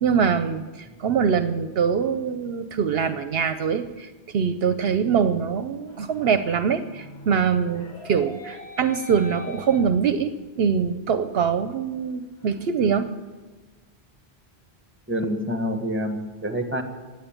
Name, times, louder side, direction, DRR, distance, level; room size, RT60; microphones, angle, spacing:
voice 1, 0.0-10.3 10.6-13.1, right 6 dB, 70° right, 11 dB, 0.9 m, -23 dB
sound 1, 5.9-10.5 10.9-11.0 11.5-11.6 11.9-13.2, left 3 dB, 70° left, 1.8 m, -43 dB
voice 2, 15.1-16.8, equal, 10° right, 6 dB, 1.6 m, -27 dB
16.0 x 9.3 x 8.8 m, 1.3 s
omnidirectional pair, 1.1 m